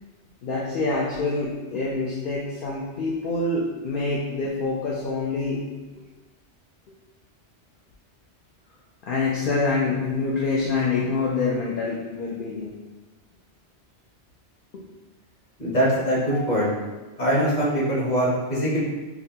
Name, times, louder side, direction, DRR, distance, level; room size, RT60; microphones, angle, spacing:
voice 1, 0.4-5.6 9.1-12.7 14.7-14.8 16.3-16.7, left 3 dB, 60° left, -5 dB, 0.6 m, -26 dB
voice 2, 15.6-16.7 17.2-18.8, equal, 40° left, -6 dB, 1.1 m, -22 dB
5.7 x 2.2 x 2.8 m, 1.2 s
omnidirectional pair, 1.2 m